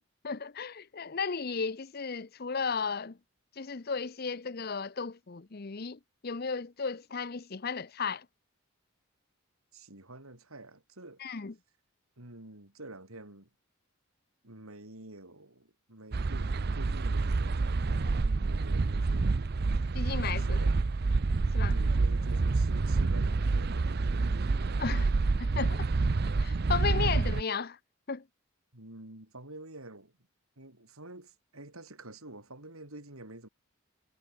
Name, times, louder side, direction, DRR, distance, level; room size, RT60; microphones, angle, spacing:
voice 1, 0.2-3.2 3.6-8.3 11.2-11.5 19.9-20.6 21.5-21.8 24.8-25.1 25.4-25.9 26.4-27.8 28.1-28.2, left 5 dB, 45° left, 0.7 m, -34 dB
voice 2, 9.7-11.2 12.2-13.5 14.4-19.5 20.4-20.8 21.7-24.5 28.7-30.1 30.6-33.5, right 2 dB, 85° right, 5.9 m, -48 dB
sound 1, 16.1-27.4, right 3 dB, 45° right, 0.5 m, -28 dB
head